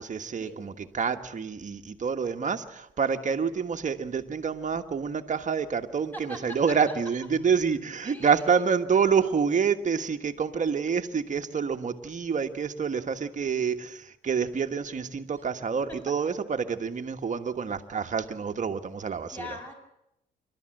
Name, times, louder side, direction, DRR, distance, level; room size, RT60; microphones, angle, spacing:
voice 1, 0.0-19.5, right 6 dB, 40° right, 7 dB, 1.5 m, -27 dB
voice 2, 6.1-6.6 8.0-8.7 15.3-15.4 19.3-19.7, equal, 10° left, 2 dB, 6.6 m, -41 dB
27.0 x 12.5 x 7.8 m, 0.83 s
cardioid pair, 90°, 20 cm